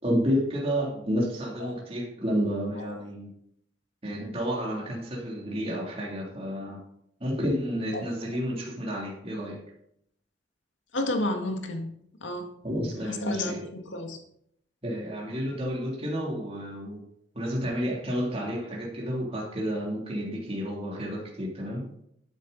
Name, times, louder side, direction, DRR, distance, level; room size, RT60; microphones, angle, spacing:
voice 1, 0.0-3.3 4.0-6.8 7.2-9.6 12.6-13.6 14.8-17.0 17.3-21.8, equal, 30° right, -3 dB, 3.2 m, -30 dB
voice 2, 10.9-11.9 12.2-12.5 12.8-14.2, left 1 dB, 85° left, 4 dB, 2.0 m, -31 dB
13.0 x 9.2 x 4.2 m, 0.72 s
head